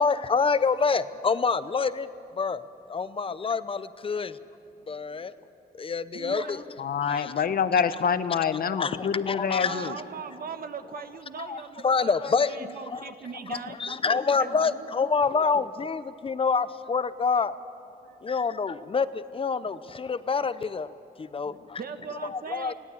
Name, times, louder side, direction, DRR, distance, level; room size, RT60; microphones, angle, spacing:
voice 1, 0.0-2.1 2.4-2.6 2.9-4.4 4.9-5.3 5.8-6.6 7.0-7.3 8.5-9.9 11.4-12.6 12.9-13.1 13.5-17.5 18.2-20.9 21.2-21.8 22.2-22.7, left 5 dB, 35° left, 14 dB, 0.6 m, -27 dB
voice 2, 6.1-6.6 9.6-14.9 15.3-15.7 18.1-18.2 19.6-19.8 21.4-22.7, right 5 dB, 65° right, 8 dB, 1.2 m, -40 dB
voice 3, 6.8-9.9, left 7 dB, 65° left, 12 dB, 0.9 m, -26 dB
21.0 x 17.5 x 8.5 m, 2.9 s
wide cardioid pair, 135°, 16 cm